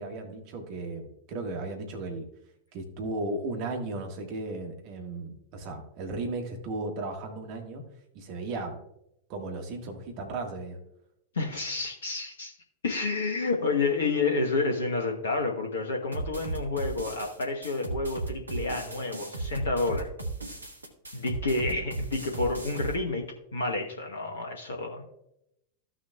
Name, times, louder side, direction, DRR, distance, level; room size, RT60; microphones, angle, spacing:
voice 1, 0.0-2.3 2.7-7.8 8.1-8.8 9.3-10.8, right 2 dB, 45° right, 4 dB, 1.6 m, -35 dB
voice 2, 11.3-12.5 12.8-20.1 21.1-23.3 23.5-25.0, left 3 dB, 65° left, 2 dB, 1.1 m, -29 dB
sound 1, 16.1-22.9, right 3 dB, 80° right, 1.2 m, -36 dB
14.5 x 6.3 x 2.3 m, 0.80 s
figure-of-eight pair, 90°, 0 cm